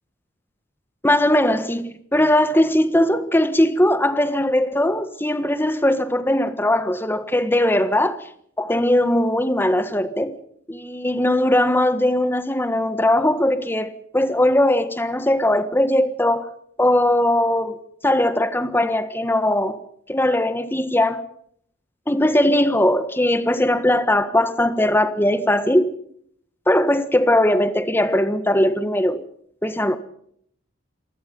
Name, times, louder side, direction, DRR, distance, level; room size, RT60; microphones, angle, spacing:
voice 1, 1.0-8.1 8.6-10.3 10.7-16.5 16.8-19.8 20.1-21.2 22.1-25.9 26.7-29.2 29.6-30.0, left 1 dB, 10° left, 1.5 m, -19 dB
28.5 x 19.5 x 5.5 m
head